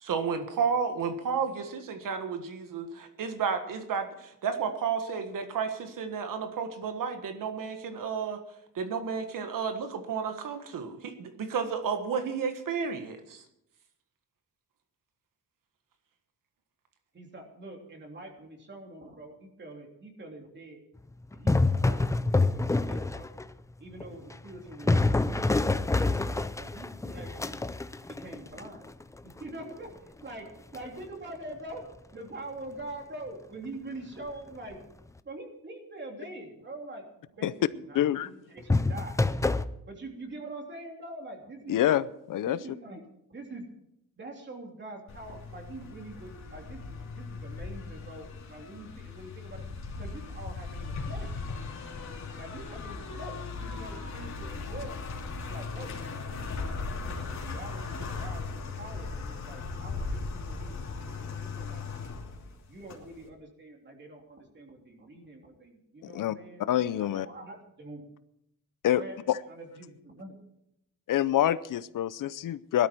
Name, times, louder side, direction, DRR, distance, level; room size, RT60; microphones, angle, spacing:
voice 1, 0.0-8.4 8.8-13.4, right 6 dB, 75° right, 7 dB, 1.6 m, -32 dB
voice 2, 17.1-20.8 21.3-22.1 22.3-23.3 23.8-25.2 25.5-27.5 28.1-28.9 29.4-30.5 30.7-31.9 32.1-34.8 35.2-39.1 39.8-41.8 42.4-43.0 43.3-43.6 44.2-49.7 50.0-51.3 52.4-55.0 55.5-55.9 56.3-61.8 62.7-68.0 68.9-69.2 69.5-70.4, right 2 dB, 35° right, 1 dB, 3.3 m, -44 dB
sound 1, 21.3-23.5 24.0-29.0 30.7-31.0 38.7-39.7, left 3 dB, 10° left, 0.4 m, -26 dB
voice 3, 37.9-38.3 41.7-42.6 66.0-66.4 66.7-67.3 68.8-69.0 69.3-69.4 71.1-72.9, left 12 dB, 70° left, 16 dB, 0.6 m, -26 dB
sound 2, 45.1-63.2, left 4 dB, 55° left, 3.1 m, -38 dB
18.0 x 12.5 x 4.6 m, 0.78 s
wide cardioid pair, 140°, 33 cm